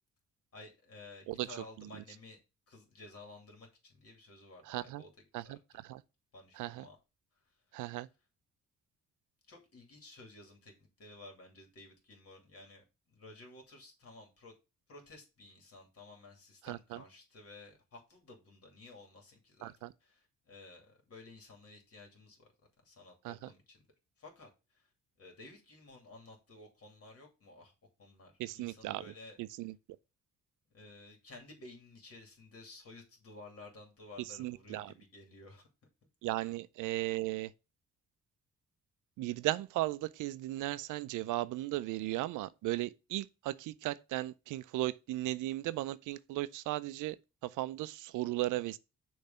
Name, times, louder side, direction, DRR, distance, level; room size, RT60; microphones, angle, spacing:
voice 1, 0.5-2.4 2.7-5.1 5.4-5.6 6.3-7.0 7.7-8.0 9.5-14.5 14.9-19.7 20.0-22.5 22.8-23.8 24.2-24.9 25.2-27.7 28.0-29.4 30.7-35.7 36.4-36.6, left 2 dB, 50° left, 2.6 m, -54 dB
voice 2, 4.7-5.0 5.3-6.0 6.6-6.9 7.7-8.1 16.6-17.0 19.6-19.9 23.2-23.4 28.4-29.0 29.4-29.7 34.4-34.9 36.2-37.5 39.2-47.2 47.4-48.8, right 16 dB, 85° right, 0.5 m, -36 dB
6.7 x 3.2 x 5.5 m
cardioid pair, 90°, 30 cm